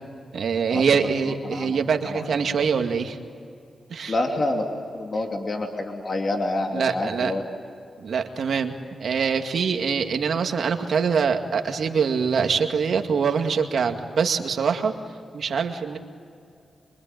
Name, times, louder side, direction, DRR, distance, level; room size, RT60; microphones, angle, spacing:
voice 1, 0.3-3.2 3.9-4.2 6.7-7.3 8.0-8.7 9.0-14.9 15.3-16.0, right 6 dB, 75° right, 5 dB, 2.1 m, -24 dB
voice 2, 4.1-4.6 4.9-7.4, left 2 dB, 50° left, 2 dB, 2.8 m, -27 dB
24.5 x 24.0 x 9.3 m, 2.5 s
cardioid pair, 70°, 0 cm